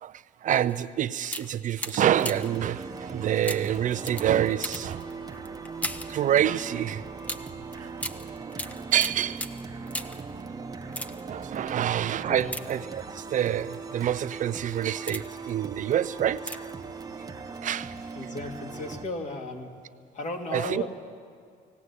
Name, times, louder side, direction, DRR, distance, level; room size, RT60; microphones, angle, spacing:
voice 1, 0.0-5.1 6.1-7.0 8.9-9.4 11.3-16.5 17.6-18.0 20.5-20.8, right 10 dB, 50° right, 0.5 m, -27 dB
sound 1, 0.7-0.8 1.2-2.6 3.4-6.2 7.2-10.3 10.8-11.4 12.4-13.2 13.9-14.1 14.7-15.5 16.4-16.8 17.1-17.2, left 1 dB, 10° left, 0.8 m, -37 dB
sound 2, 2.0-19.1, right 4 dB, 20° right, 1.0 m, -39 dB
voice 2, 18.2-19.7 20.1-20.9, left 2 dB, 45° left, 2.3 m, -35 dB
19.0 x 17.0 x 8.2 m
cardioid pair, 110°, 17 cm